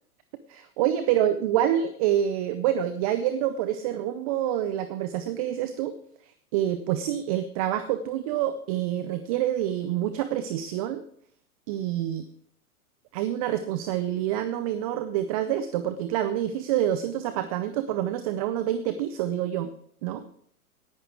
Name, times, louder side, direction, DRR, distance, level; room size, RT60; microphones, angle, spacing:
voice 1, 0.5-6.0 6.5-11.0 11.7-12.3 13.1-19.7 20.0-20.3, right 11 dB, 25° right, 11 dB, 0.4 m, -27 dB
10.5 x 9.7 x 4.6 m, 0.64 s
hypercardioid pair, 115°, 46 cm